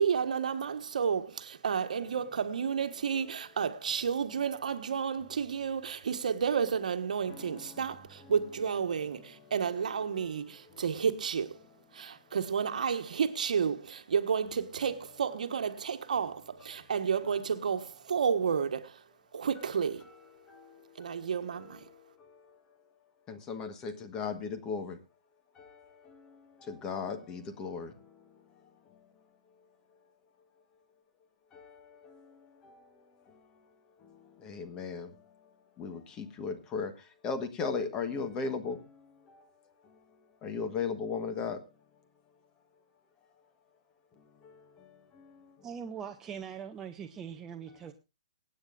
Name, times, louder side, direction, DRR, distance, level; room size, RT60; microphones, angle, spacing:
voice 1, 0.0-11.6 11.9-19.0 19.3-20.1 21.0-21.8, right 6 dB, 75° right, 1.4 m, -31 dB
voice 2, 7.3-7.8 23.3-25.0 26.7-27.9 31.6-31.7 34.4-35.1 35.8-36.9 37.2-38.8 40.4-41.6, left 5 dB, 20° left, 1.3 m, -35 dB
voice 3, 45.6-47.9, right 7 dB, 15° right, 0.6 m, -41 dB
24.5 x 8.9 x 2.5 m
hypercardioid pair, 160°, 4 cm